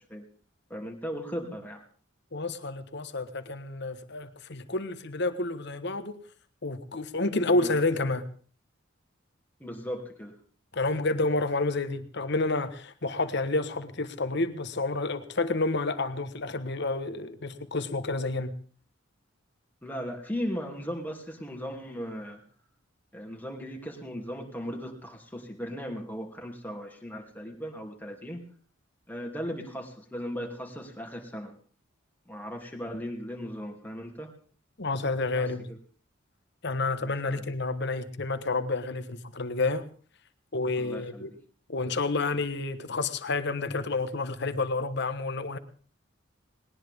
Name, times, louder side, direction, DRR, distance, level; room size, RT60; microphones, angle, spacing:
voice 1, 0.7-1.8 7.5-7.7 9.6-10.4 19.8-22.4 23.1-28.4 29.1-31.6 32.3-34.3 35.3-35.8 37.3-37.4 40.8-41.4, equal, 10° left, 2.8 m, -37 dB
voice 2, 2.3-6.2 6.6-8.3 10.7-18.5 34.8-35.7 36.6-39.8 40.5-41.3 41.7-45.6, left 3 dB, 60° left, 1.4 m, -29 dB
20.0 x 19.0 x 3.7 m
head